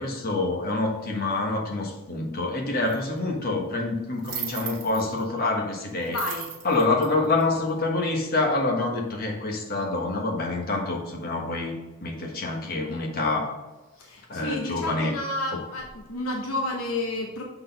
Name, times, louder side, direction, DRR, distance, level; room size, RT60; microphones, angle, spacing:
voice 1, 0.0-6.2 6.6-11.8 12.0-13.6 14.3-15.2 15.5-15.6, left 2 dB, 45° left, 1 dB, 1.2 m, -26 dB
sound 1, 2.9-3.0 4.2-5.2 6.1-7.9, right 8 dB, 40° right, 1.4 m, -36 dB
voice 2, 6.1-6.5 14.0-17.4, left 2 dB, 70° left, 1 dB, 0.9 m, -31 dB
6.6 x 4.0 x 5.2 m, 1.1 s
head